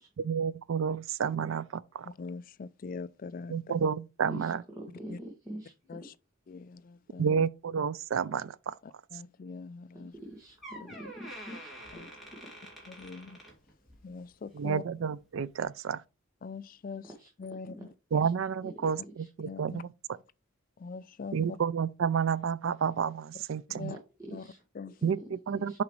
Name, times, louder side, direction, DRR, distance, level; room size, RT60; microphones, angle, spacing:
voice 1, 0.2-2.1 3.5-4.6 7.2-8.7 14.5-16.0 18.1-19.9 21.3-23.9 25.0-25.8, right 6 dB, 70° right, 0.4 m, -30 dB
voice 2, 2.0-3.7 5.1-5.2 5.9-6.1 6.5-7.5 8.8-10.1 10.8-10.9 11.9-12.1 12.9-13.4 14.0-14.8 16.4-17.1 17.4-17.9 19.4-19.8 20.8-21.6 23.7-24.0 24.3-24.5 24.7-25.0, left 4 dB, 40° left, 0.3 m, -42 dB
voice 3, 4.3-6.0 9.9-12.1 12.3-12.5 12.7-12.9 17.2-17.3 18.2-18.3 18.6-18.7 19.2-19.3 23.9-24.0 24.4-24.6 25.7-25.8, right 1 dB, 15° right, 1.5 m, -45 dB
Door, 10.1-10.3 10.6-14.1 14.5-14.7 15.5-15.6, equal, ahead, 2.3 m, -47 dB
6.9 x 4.9 x 3.1 m
head